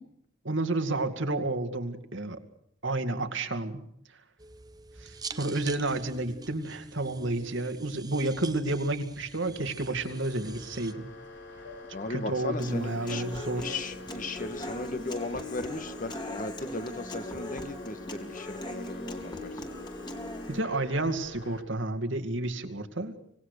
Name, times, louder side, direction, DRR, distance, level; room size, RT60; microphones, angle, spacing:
voice 1, 0.4-2.4 2.8-3.8 5.0-11.1 12.1-13.7 20.5-23.1, right 2 dB, 70° right, 7 dB, 2.4 m, -31 dB
sound 1, 4.4-10.9, right 4 dB, 20° right, 1.1 m, -45 dB
sound 2, 9.4-21.6, left 3 dB, 65° left, 4.1 m, -47 dB
voice 2, 11.9-13.2 13.6-19.5, left 2 dB, 40° left, 10 dB, 1.7 m, -37 dB
Human voice / Acoustic guitar, 12.6-20.6, left 1 dB, 25° left, 2.7 m, -39 dB
26.0 x 18.5 x 6.6 m, 0.72 s
head